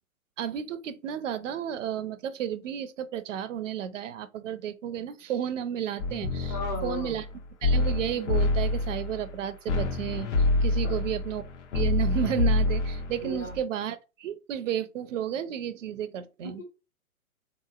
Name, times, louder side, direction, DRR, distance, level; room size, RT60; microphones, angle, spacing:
voice 1, 0.4-6.6 6.8-7.3 7.6-11.5 11.7-16.6, right 9 dB, 60° right, 0.5 m, -32 dB
sound 1, 6.0-7.3 7.6-9.4 9.7-13.6, left 2 dB, 55° left, 0.8 m, -27 dB
voice 2, 6.5-7.2 10.8-11.0 13.2-13.6 16.4-16.6, left 2 dB, 15° left, 0.4 m, -35 dB
3.6 x 2.9 x 2.4 m
figure-of-eight pair, 120°, 44 cm